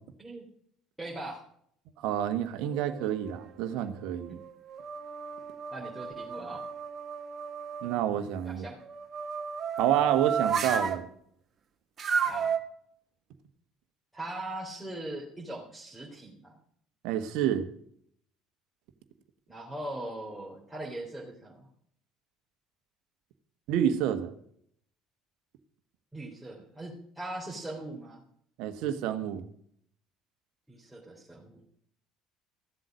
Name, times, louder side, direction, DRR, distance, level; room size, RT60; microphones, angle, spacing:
voice 1, 1.0-1.4 5.7-6.6 8.4-8.8 12.3-12.5 14.1-16.5 19.5-21.7 26.1-28.2 30.7-31.6, right 1 dB, 5° right, -5 dB, 3.6 m, -40 dB
voice 2, 2.0-4.4 7.8-8.6 9.8-11.1 17.0-17.7 23.7-24.3 28.6-29.4, right 10 dB, 65° right, 9 dB, 1.3 m, -28 dB
sound 1, 2.6-3.5 4.0-8.0 8.8-11.0 12.0-12.6, right 7 dB, 40° right, 1.4 m, -33 dB
14.0 x 7.7 x 6.2 m, 0.66 s
hypercardioid pair, 60°, 0 cm